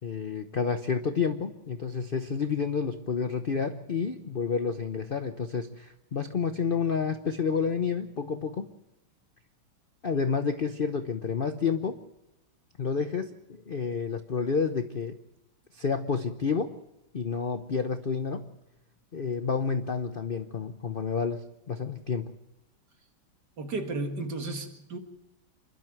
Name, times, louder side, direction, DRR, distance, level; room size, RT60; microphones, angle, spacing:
voice 1, 0.0-8.7 10.0-12.0 12.8-15.2 15.7-16.7 17.1-18.5 19.1-22.3, left 5 dB, 65° left, 8 dB, 0.5 m, -30 dB
voice 2, 23.6-25.0, right 3 dB, 55° right, 5 dB, 2.4 m, -33 dB
27.5 x 12.5 x 7.7 m, 0.87 s
omnidirectional pair, 2.2 m